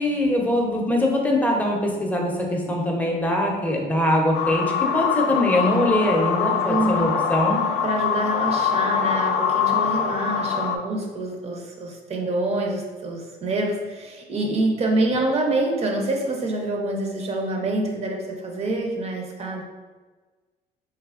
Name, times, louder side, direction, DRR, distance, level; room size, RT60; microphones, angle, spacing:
voice 1, 0.0-7.6, left 1 dB, 10° left, -1 dB, 0.7 m, -22 dB
sound 1, 4.3-10.8, left 7 dB, 75° left, 0.4 m, -23 dB
voice 2, 6.7-7.2 7.8-19.6, right 2 dB, 40° right, 1 dB, 0.7 m, -26 dB
3.3 x 3.2 x 2.4 m, 1.4 s
cardioid pair, 110°, 17 cm